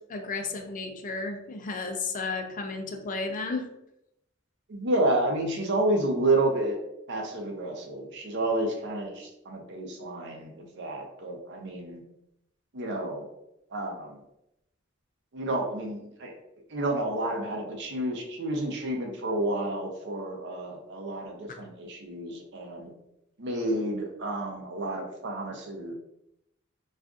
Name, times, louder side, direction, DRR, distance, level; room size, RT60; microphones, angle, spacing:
voice 1, 0.1-3.7, left 3 dB, 40° left, 4 dB, 0.5 m, -33 dB
voice 2, 4.7-6.8 7.1-12.0 12.7-13.3 13.7-14.2 15.3-16.4 16.7-22.9 23.4-25.9, right 1 dB, 60° right, 2 dB, 0.6 m, -30 dB
2.5 x 2.4 x 3.6 m, 0.82 s
head